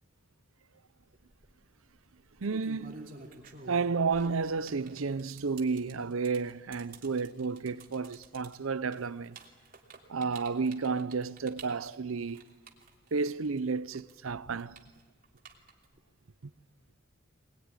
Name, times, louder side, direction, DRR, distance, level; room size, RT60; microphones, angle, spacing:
sound 1, 1.1-1.5 2.2-13.6 13.9-16.0, right 3 dB, 40° right, 3.0 m, -50 dB
voice 1, 2.4-3.1 3.7-9.4 10.1-12.5 13.1-14.8, right 4 dB, 85° right, 0.7 m, -32 dB
24.5 x 20.0 x 9.9 m
head